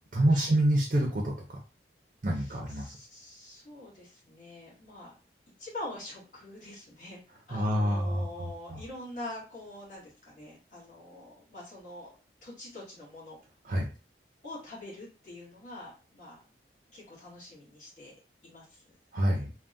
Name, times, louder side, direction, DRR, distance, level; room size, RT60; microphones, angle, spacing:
voice 1, 0.1-1.6 2.2-3.0 7.5-8.8 13.6-13.9 19.1-19.5, right 1 dB, 45° right, 0 dB, 0.5 m, -27 dB
voice 2, 2.3-5.1 5.6-7.2 7.5-12.1 12.4-13.4 14.4-16.5 16.9-18.1 18.4-18.8 19.3-19.4, left 1 dB, 45° left, -7 dB, 1.5 m, -45 dB
3.4 x 2.1 x 2.5 m, 0.37 s
head